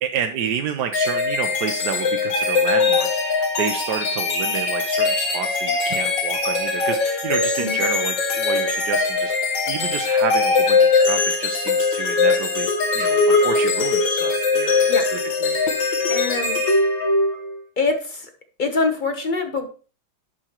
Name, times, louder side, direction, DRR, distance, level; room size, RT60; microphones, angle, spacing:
voice 1, 0.0-12.7 12.9-16.0, right 8 dB, 65° right, 5 dB, 1.1 m, -30 dB
sound 1, 0.9-17.6, left 4 dB, 65° left, 1.8 m, -21 dB
voice 2, 16.1-16.6 17.8-18.3 18.6-19.7, left 3 dB, 35° left, 5 dB, 0.8 m, -24 dB
11.0 x 6.0 x 3.0 m, 0.37 s
omnidirectional pair, 2.2 m